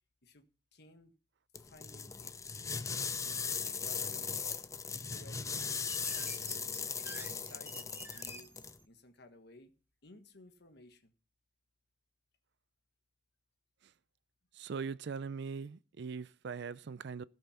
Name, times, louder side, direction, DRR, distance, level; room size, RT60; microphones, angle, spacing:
voice 1, 0.7-1.1 1.6-2.3 3.2-4.4 4.9-6.6 7.0-8.5 8.8-9.7 10.0-11.1, left 2 dB, 60° left, 1.4 m, -57 dB
sound 1, 1.5-8.8, left 6 dB, 15° left, 0.4 m, -38 dB
sound 2, 5.5-8.8, right 2 dB, 10° right, 0.9 m, -50 dB
voice 2, 14.5-17.2, right 5 dB, 65° right, 0.4 m, -41 dB
16.0 x 5.5 x 5.8 m
head